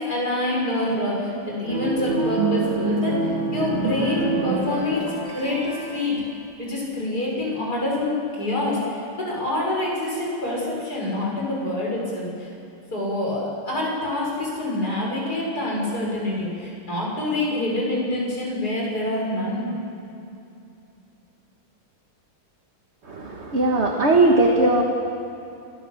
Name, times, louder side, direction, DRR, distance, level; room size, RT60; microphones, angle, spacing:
voice 1, 0.0-5.0 5.3-6.2 6.6-12.5 12.9-19.7, left 1 dB, 45° left, -4 dB, 6.5 m, -26 dB
sound 1, 1.7-5.1, right 3 dB, 65° right, 3.0 m, -25 dB
sound 2, 3.3-6.3, equal, 10° left, 3.3 m, -33 dB
voice 2, 23.0-24.8, right 2 dB, 35° right, 1 dB, 1.6 m, -19 dB
28.0 x 17.5 x 7.3 m, 2.7 s
omnidirectional pair, 2.3 m